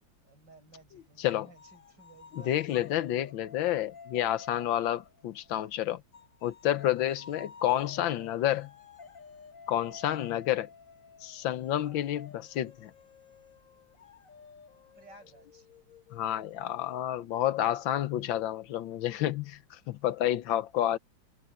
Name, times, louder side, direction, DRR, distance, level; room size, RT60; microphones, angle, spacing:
voice 1, 0.2-2.5 5.5-5.8 15.0-15.7, right 3 dB, 60° right, 7.5 m, -55 dB
sound 1, 1.2-5.6 6.1-17.5, left 5 dB, 45° left, 1.7 m, -52 dB
voice 2, 2.3-6.0 6.4-8.7 9.7-10.7 11.2-12.9 16.1-21.0, left 12 dB, 75° left, 1.5 m, -30 dB
omnidirectional pair, 2.2 m